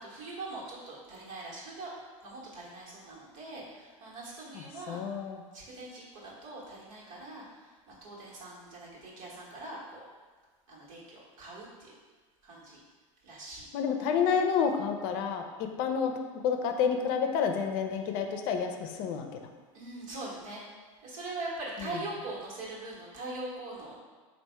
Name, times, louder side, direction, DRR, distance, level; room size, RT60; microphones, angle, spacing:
voice 1, 0.0-1.9 2.2-5.0 5.5-7.4 7.9-10.0 10.7-11.9 12.4-12.8 13.2-13.7 19.7-20.6 21.0-24.0, right 2 dB, 75° right, -5 dB, 1.4 m, -42 dB
voice 2, 4.5-5.4 13.7-15.5 15.8-16.1 16.4-19.4 21.8-22.0, left 6 dB, 60° left, 5 dB, 0.5 m, -29 dB
3.4 x 2.5 x 4.4 m, 1.4 s
hypercardioid pair, 95°, 17 cm